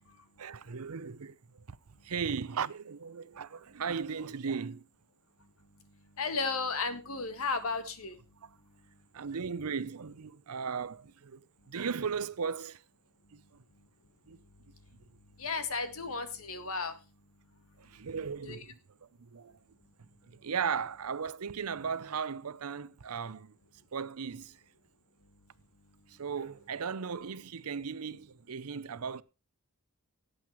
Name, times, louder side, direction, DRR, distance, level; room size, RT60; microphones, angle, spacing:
voice 1, 0.4-1.8 2.0-4.9 9.1-12.8 13.3-13.6 14.3-14.4 17.8-19.6 20.0-23.6 23.9-24.6 26.1-29.2, right 6 dB, 90° right, 0.6 m, -37 dB
voice 2, 6.2-8.2 15.4-16.9 18.5-18.6, left 4 dB, 75° left, 1.8 m, -34 dB
18.0 x 7.9 x 3.1 m
head